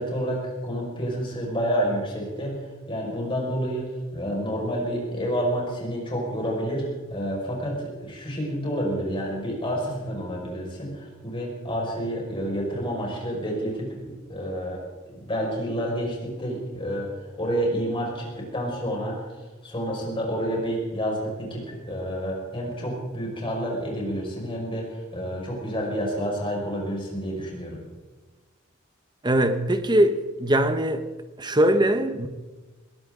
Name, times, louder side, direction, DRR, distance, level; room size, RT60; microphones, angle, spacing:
voice 1, 0.0-2.6 2.9-14.8 15.2-17.1 17.3-19.3 19.6-27.8, equal, 25° left, 5.6 m, -29 dB
voice 2, 29.2-31.1 31.4-32.3, right 1 dB, 20° right, 1.1 m, -21 dB
21.0 x 18.0 x 3.9 m
head